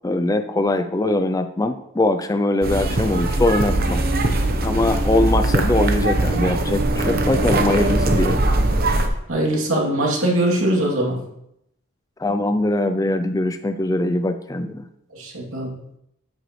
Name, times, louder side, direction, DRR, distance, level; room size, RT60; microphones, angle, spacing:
voice 1, 0.0-4.0 4.6-8.4 12.2-14.8, left 2 dB, 15° left, 9 dB, 0.3 m, -22 dB
sound 1, 2.6-9.1, right 2 dB, 40° right, 0.9 m, -20 dB
voice 2, 9.3-11.2 15.1-15.7, right 1 dB, 70° right, -2 dB, 2.8 m, -21 dB
9.4 x 8.9 x 3.2 m, 0.79 s
head